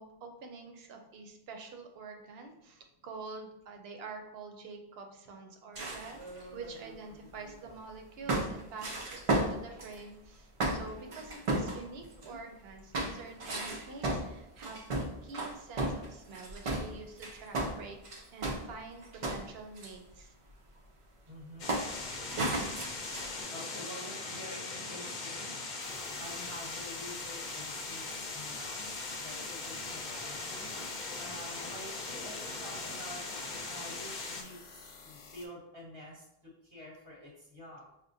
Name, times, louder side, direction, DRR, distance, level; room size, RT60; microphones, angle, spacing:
voice 1, 0.0-20.4 22.1-22.6, right 4 dB, 75° right, 4 dB, 0.8 m, -47 dB
sound 1, 5.8-7.7 8.3-10.0 10.6-12.4 12.9-18.7 19.0-19.9 21.7-22.0 22.3-23.4, right 2 dB, 55° right, 0.3 m, -34 dB
voice 2, 21.3-21.8 23.5-25.6 26.2-33.2 33.5-36.2 36.7-37.9, equal, 20° right, -4 dB, 0.8 m, -48 dB
sound 2, 21.6-34.4, left 3 dB, 55° left, 0.6 m, -40 dB
sound 3, 25.8-35.5, left 5 dB, 85° left, 0.9 m, -53 dB
5.0 x 2.1 x 2.6 m, 0.82 s
omnidirectional pair, 1.1 m